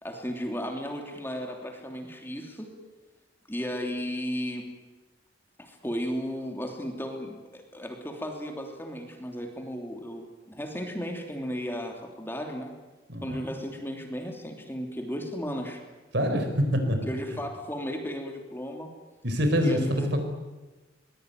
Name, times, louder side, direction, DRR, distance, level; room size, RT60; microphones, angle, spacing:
voice 1, 0.0-2.7 3.5-4.7 5.6-12.7 13.2-15.8 17.1-18.9 19.6-20.1, equal, 10° left, 3 dB, 3.2 m, -35 dB
voice 2, 13.1-13.4 16.1-17.0 19.2-20.2, equal, 60° right, 6 dB, 4.6 m, -25 dB
23.0 x 20.5 x 9.4 m, 1.2 s
head